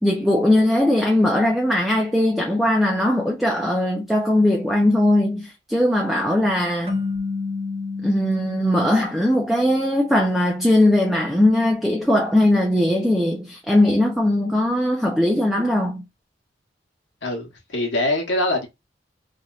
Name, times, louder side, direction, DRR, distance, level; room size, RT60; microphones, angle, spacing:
voice 1, 0.0-6.9 8.0-16.0, left 1 dB, ahead, 0.5 m, -19 dB
sound 1, 6.9-10.0, left 4 dB, 35° right, 1.1 m, -30 dB
voice 2, 17.2-18.7, left 1 dB, 85° left, 1.0 m, -23 dB
3.1 x 2.8 x 2.4 m
head